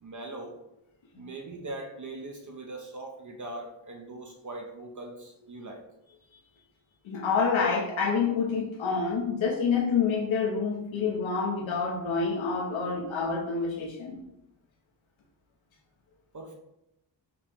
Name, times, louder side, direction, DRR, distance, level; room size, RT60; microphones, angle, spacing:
voice 1, 0.0-0.6 1.2-5.8 16.3-16.5, right 2 dB, 40° right, 2 dB, 0.6 m, -41 dB
voice 2, 7.0-14.2, left 5 dB, 85° left, -2 dB, 0.9 m, -27 dB
5.1 x 2.9 x 3.5 m, 0.88 s
wide cardioid pair, 110°, 46 cm